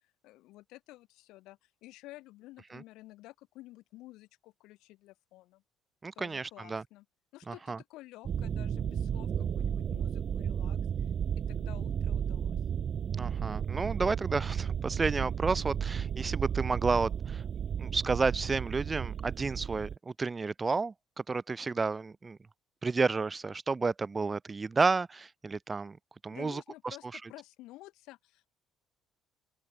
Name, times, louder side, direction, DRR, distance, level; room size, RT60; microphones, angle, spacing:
voice 1, 0.2-5.6 6.2-7.1 7.3-11.1 11.4-12.6 26.3-28.5, left 18 dB, 80° left, 4.1 m, -52 dB
voice 2, 6.0-6.8 7.5-7.8 13.1-17.4 17.8-20.9 21.3-22.4 22.8-26.0 26.2-26.6, right 4 dB, 25° right, 1.4 m, -31 dB
sound 1, 8.2-20.0, right 8 dB, 45° right, 0.9 m, -33 dB
open air
cardioid pair, 105°, 0 cm